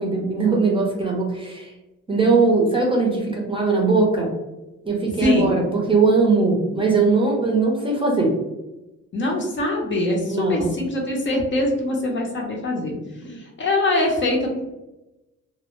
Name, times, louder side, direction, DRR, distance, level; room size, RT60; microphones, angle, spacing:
voice 1, 0.0-1.7 2.1-4.3 4.8-8.3 10.3-10.7 13.3-13.4, right 3 dB, 15° right, -1 dB, 0.6 m, -20 dB
voice 2, 5.2-5.5 9.1-12.9 13.3-14.6, left 1 dB, 40° left, 0 dB, 0.6 m, -23 dB
2.0 x 2.0 x 2.9 m, 0.98 s
cardioid pair, 90°, 30 cm